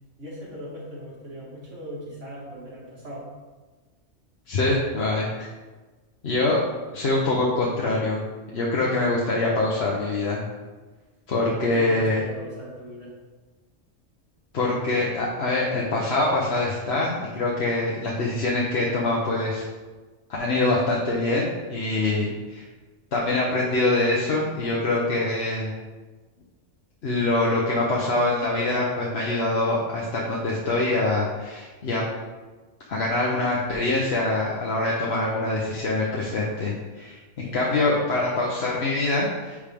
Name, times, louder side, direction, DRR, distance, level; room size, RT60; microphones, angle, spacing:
voice 1, 0.2-3.3 11.5-13.1 37.4-38.0, equal, 85° right, -6 dB, 2.4 m, -38 dB
voice 2, 4.5-5.5 6.2-6.6 6.9-8.2 8.5-10.4 11.3-12.2 14.5-19.6 20.4-22.6 23.1-25.7 27.0-32.0 32.9-39.6, left 2 dB, 65° left, -4 dB, 1.1 m, -24 dB
9.7 x 3.5 x 3.5 m, 1.3 s
omnidirectional pair, 1.2 m